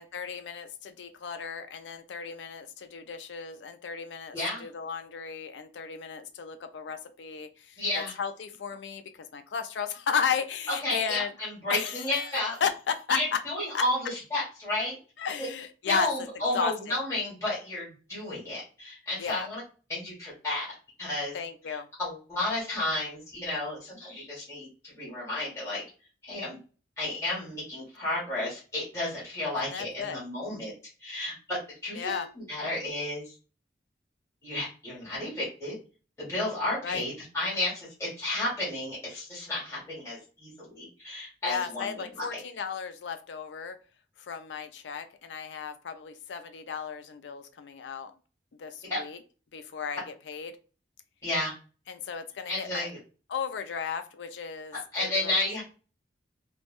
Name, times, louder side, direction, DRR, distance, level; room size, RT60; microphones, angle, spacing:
voice 1, 0.0-11.3 11.7-13.4 13.7-13.8 15.2-17.0 19.2-19.5 21.3-21.9 29.6-30.2 31.9-32.3 36.8-37.0 41.4-43.8 44.2-48.1 48.6-49.2 49.5-50.5 51.9-52.9 53.3-55.4, left 6 dB, 85° left, 9 dB, 0.4 m, -34 dB
voice 2, 4.3-4.7 7.8-8.1 10.8-12.5 13.1-15.0 15.4-15.5 15.8-19.6 19.9-20.7 21.0-21.4 21.7-25.8 26.2-26.6 27.0-30.7 31.0-33.3 34.4-35.8 36.2-42.2 48.8-49.0 51.2-51.5 52.5-53.0 54.9-55.6, left 1 dB, 15° left, -9 dB, 1.4 m, -32 dB
3.3 x 2.1 x 2.4 m, 0.37 s
head